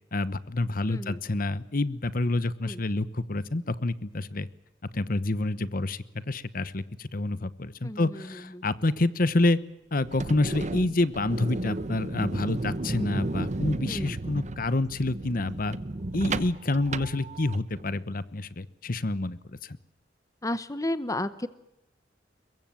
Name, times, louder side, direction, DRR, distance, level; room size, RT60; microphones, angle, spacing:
voice 1, 0.1-4.5 4.9-9.6 9.9-15.8 16.1-19.8, left 2 dB, 50° left, 15 dB, 1.0 m, -28 dB
voice 2, 0.9-1.2 2.6-2.8 7.8-8.6 13.9-14.2 20.4-21.5, left 1 dB, 20° left, 13 dB, 0.9 m, -33 dB
sound 1, 10.0-17.8, right 2 dB, 40° right, 0.9 m, -34 dB
23.5 x 22.0 x 7.6 m, 0.87 s
head